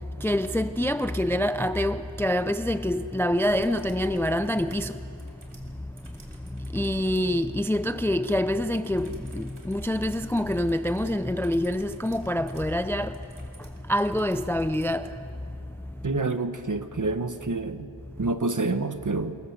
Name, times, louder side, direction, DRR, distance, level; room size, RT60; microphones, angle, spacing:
voice 1, 0.2-5.0 6.7-13.2 13.9-15.1, left 1 dB, 5° left, 0.5 m, -26 dB
sound 1, 3.4-7.4 8.7-15.0 16.7-16.8, right 2 dB, 55° right, 3.6 m, -51 dB
voice 2, 16.0-17.9 18.2-19.4, right 3 dB, 40° right, 1.3 m, -28 dB
26.5 x 21.5 x 7.3 m
wide cardioid pair, 70°, 48 cm